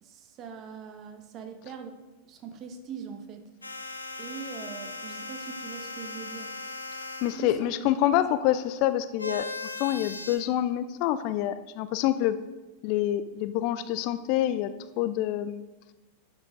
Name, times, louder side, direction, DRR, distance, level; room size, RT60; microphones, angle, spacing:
voice 1, 0.0-2.0 2.2-3.5 4.2-6.5 7.3-8.1, right 6 dB, 35° right, 7 dB, 1.2 m, -42 dB
sound 1, 3.6-7.5 9.2-10.4, left 3 dB, 80° left, 1.0 m, -38 dB
voice 2, 7.2-9.5 9.8-12.4 12.8-15.7, left 12 dB, 45° left, 13 dB, 0.4 m, -27 dB
11.0 x 6.1 x 5.0 m, 1.2 s
figure-of-eight pair, 90°, 0 cm